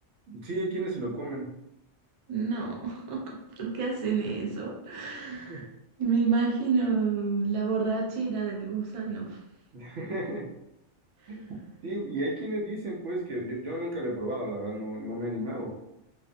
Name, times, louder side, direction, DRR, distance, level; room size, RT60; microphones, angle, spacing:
voice 1, 0.3-1.5 5.3-5.6 9.7-10.5 11.3-11.5 11.8-15.7, right 1 dB, 85° right, -2 dB, 1.0 m, -33 dB
voice 2, 2.3-5.6 6.0-9.4 11.2-11.4, right 5 dB, 50° right, -2 dB, 0.4 m, -29 dB
2.5 x 2.2 x 2.5 m, 0.83 s
omnidirectional pair, 1.2 m